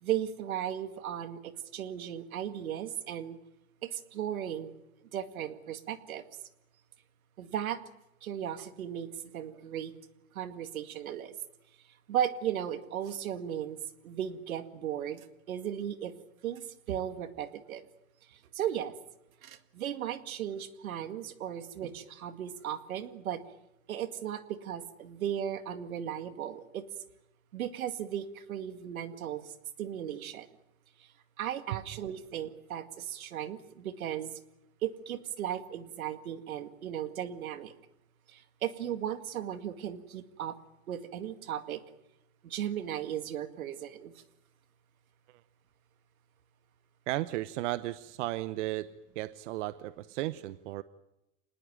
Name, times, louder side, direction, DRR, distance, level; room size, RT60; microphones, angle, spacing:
voice 1, 0.0-3.4 3.8-4.7 5.1-6.2 7.4-7.8 8.2-9.9 10.3-11.3 12.1-16.1 16.4-17.8 18.3-19.0 19.4-23.4 23.9-26.9 27.5-30.5 31.0-31.1 31.4-34.3 34.8-37.7 38.3-40.6 40.9-41.8 42.4-44.1, right 10 dB, 85° right, 10 dB, 2.2 m, -36 dB
voice 2, 47.1-48.9 49.1-50.8, right 16 dB, 60° right, 14 dB, 1.0 m, -34 dB
26.0 x 19.5 x 9.0 m, 0.90 s
supercardioid pair, 140°, 41 cm